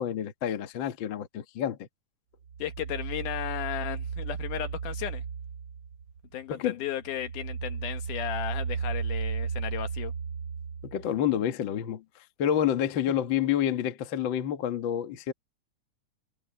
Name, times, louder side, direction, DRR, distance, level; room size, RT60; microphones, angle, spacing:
voice 1, 0.0-1.9 6.5-6.8 10.8-12.0 12.4-15.3, left 10 dB, 55° left, 1.4 m, -28 dB
sound 1, 2.5-6.3 6.7-11.3, right 6 dB, 70° right, 1.1 m, -35 dB
voice 2, 2.6-5.2 6.3-10.1, left 11 dB, 75° left, 2.6 m, -35 dB
omnidirectional pair, 3.8 m